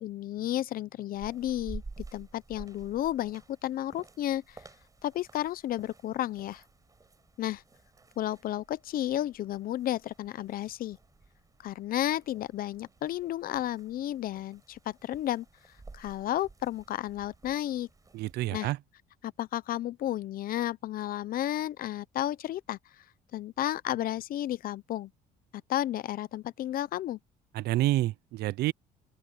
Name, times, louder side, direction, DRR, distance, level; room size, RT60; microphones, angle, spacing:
voice 1, 0.0-1.8 2.1-4.6 5.0-6.6 7.4-7.6 8.2-11.0 11.6-15.5 15.9-17.9 18.5-18.7 19.2-22.8 23.3-25.1 25.7-27.2, left 13 dB, 60° left, 0.7 m, -32 dB
sound 1, 1.1-18.3, right 3 dB, 20° right, 6.1 m, -52 dB
voice 2, 18.1-18.8 27.5-28.7, right 16 dB, 75° right, 0.5 m, -28 dB
open air
cardioid pair, 110°, 17 cm